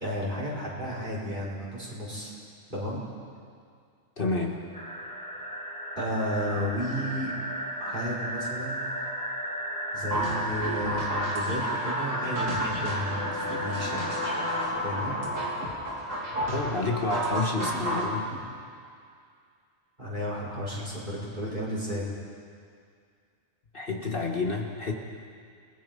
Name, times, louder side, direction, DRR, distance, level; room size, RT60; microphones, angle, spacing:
voice 1, 0.0-2.3 2.7-3.0 6.0-7.3 7.8-8.9 9.9-14.1 14.8-15.3 18.3-18.4 20.0-22.1, equal, 40° right, -5 dB, 5.2 m, -33 dB
voice 2, 4.2-4.6 16.5-18.3 23.7-24.9, left 3 dB, 45° left, 1 dB, 1.8 m, -29 dB
sound 1, 4.7-14.7, equal, 5° left, 2.4 m, -35 dB
sound 2, 10.1-18.1, right 1 dB, 85° right, 3.8 m, -31 dB
29.0 x 20.0 x 5.4 m, 2.2 s
omnidirectional pair, 1.3 m